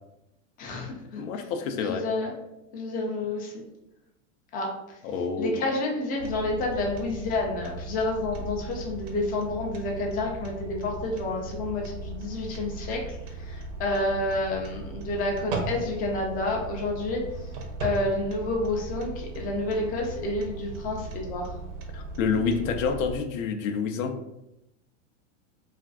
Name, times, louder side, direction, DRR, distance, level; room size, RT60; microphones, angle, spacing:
voice 1, 0.6-0.9 1.8-2.3 2.7-3.5 4.5-5.0 5.4-17.2 17.8-21.5 22.5-22.6, left 2 dB, 25° left, 0 dB, 0.4 m, -29 dB
voice 2, 1.1-2.0 5.0-5.6 21.9-24.1, left 5 dB, 80° left, 6 dB, 0.5 m, -28 dB
sound 1, 6.2-23.2, right 3 dB, 65° right, 0.7 m, -37 dB
2.5 x 2.3 x 2.3 m, 0.87 s
supercardioid pair, 130°, 39 cm